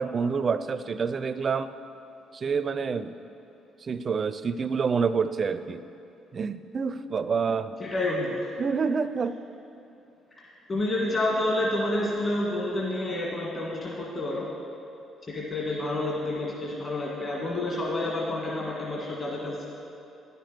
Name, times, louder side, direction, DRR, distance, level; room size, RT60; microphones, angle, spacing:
voice 1, 0.0-1.7 2.3-3.2 3.8-5.8 6.3-7.8 8.6-9.4, right 5 dB, 45° right, 13 dB, 0.4 m, -27 dB
voice 2, 7.8-8.5 10.3-14.5 15.3-19.7, left 1 dB, 45° left, -4 dB, 1.7 m, -29 dB
9.8 x 6.7 x 6.1 m, 2.7 s
supercardioid pair, 70°, 0 cm